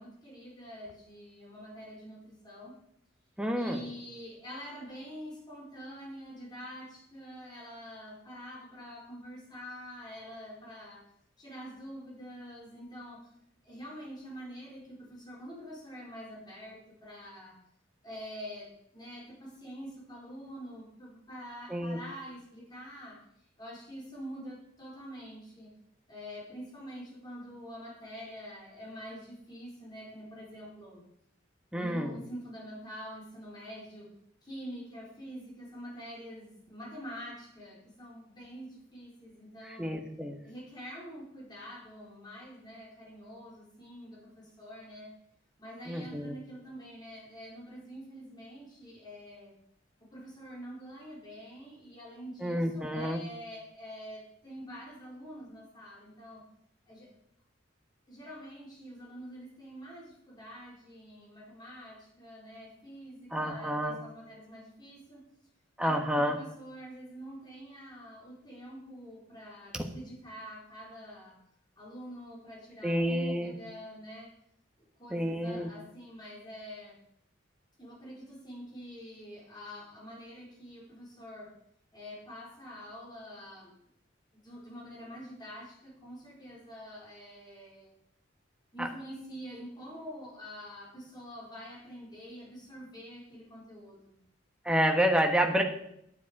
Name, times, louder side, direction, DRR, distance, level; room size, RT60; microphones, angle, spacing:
voice 1, 0.0-2.8 3.5-11.0 11.4-13.3 13.6-17.6 18.0-23.3 23.6-25.7 26.1-31.0 31.7-34.1 34.4-39.9 40.4-45.1 45.6-49.5 50.0-56.4 56.9-57.1 58.1-65.2 65.8-71.4 71.8-74.3 75.0-77.0 77.8-81.6 81.9-83.7 84.3-87.9 88.7-94.2, equal, 20° left, -4 dB, 3.8 m, -46 dB
voice 2, 3.4-3.8 21.7-22.0 31.7-32.2 39.6-40.4 45.9-46.3 52.4-53.2 63.3-64.0 65.8-66.4 69.7-69.8 72.8-73.5 75.1-75.7 88.8-88.9 94.6-95.6, equal, 5° right, 2 dB, 1.3 m, -29 dB
10.0 x 9.2 x 4.8 m, 0.73 s
head